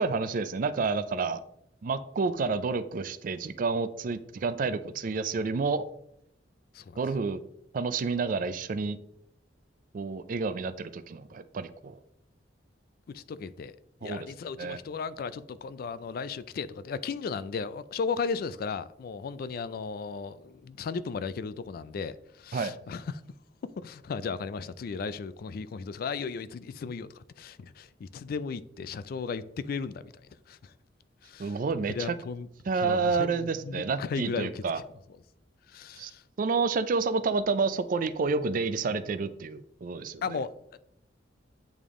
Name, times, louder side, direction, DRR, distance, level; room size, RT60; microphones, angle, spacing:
voice 1, 0.0-1.4 1.8-5.9 7.0-7.4 7.7-9.0 9.9-12.0 14.0-14.3 14.6-14.8 22.5-22.7 31.4-32.1 32.7-34.8 36.0-36.1 36.4-40.2, right 4 dB, 50° right, 0.4 m, -29 dB
voice 2, 13.1-13.8 14.0-23.2 23.6-30.2 30.5-30.7 31.2-31.6 31.9-32.5 32.7-34.6 35.7-36.2 40.2-40.8, left 5 dB, 55° left, 0.3 m, -35 dB
8.6 x 3.5 x 3.6 m
head